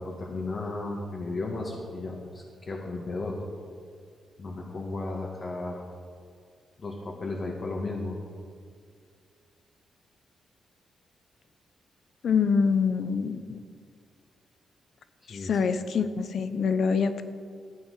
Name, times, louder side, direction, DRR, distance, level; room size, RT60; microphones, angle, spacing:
voice 1, 0.0-3.4 4.4-5.8 6.8-8.2 15.3-15.6, left 2 dB, 50° left, -2 dB, 2.2 m, -34 dB
voice 2, 12.2-13.6 15.3-17.2, left 5 dB, 70° left, 11 dB, 0.9 m, -25 dB
14.5 x 9.0 x 6.8 m, 2.1 s
supercardioid pair, 55°, 0 cm